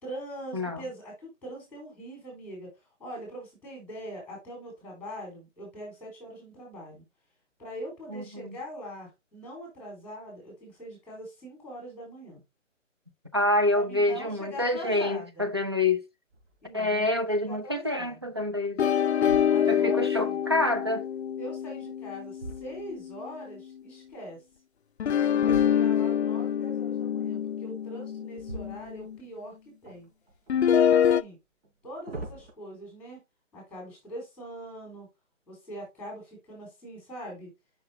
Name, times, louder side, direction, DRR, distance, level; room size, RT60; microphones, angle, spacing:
voice 1, 0.0-2.7 3.0-7.0 7.6-12.4 13.7-15.5 16.6-17.1 17.4-18.3 19.5-20.4 21.4-24.4 25.2-30.1 30.7-31.4 31.8-33.2 33.5-35.1 35.5-37.5, equal, 5° left, 3.8 m, -42 dB
voice 2, 0.5-0.8 8.1-8.6 13.3-16.0 16.7-18.8 19.7-21.1, left 2 dB, 20° right, 0.5 m, -27 dB
sound 1, 16.3-16.7 17.3-17.4 18.0-18.6 19.1-20.0 21.7-23.4 25.4-26.2 28.3-29.4 29.8-30.6 31.6-32.5, right 1 dB, 55° right, 3.8 m, -44 dB
sound 2, 18.8-23.3 25.0-29.2 30.5-31.2, left 9 dB, 60° left, 0.5 m, -26 dB
7.4 x 5.8 x 2.7 m
hypercardioid pair, 160°, 39 cm